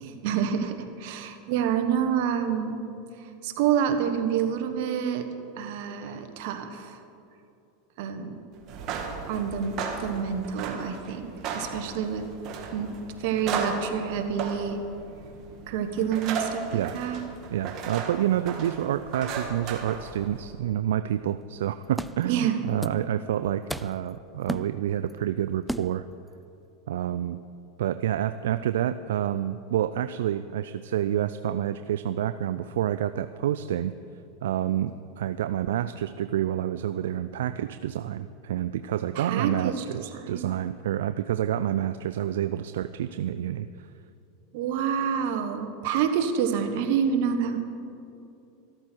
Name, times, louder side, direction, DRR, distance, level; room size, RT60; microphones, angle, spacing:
voice 1, 0.0-2.8 3.4-5.2 5.6-7.0 8.0-8.4 9.3-12.2 12.7-12.9 13.2-14.8 15.7-17.2 22.2-22.6 39.1-39.8 40.3-40.4 44.5-47.6, right 8 dB, 65° right, 7 dB, 1.3 m, -28 dB
sound 1, 8.6-20.5, right 5 dB, 50° right, 1.8 m, -36 dB
voice 2, 17.5-26.0 26.9-27.4 27.8-33.9 34.4-43.9, right 11 dB, 80° right, 11 dB, 0.3 m, -28 dB
sound 2, 21.4-21.5 21.9-22.4 22.8-23.1 23.4-24.1 24.5-25.1 25.7-26.1, right 1 dB, ahead, 0.4 m, -35 dB
14.0 x 13.0 x 4.6 m, 2.7 s
supercardioid pair, 115°, 0 cm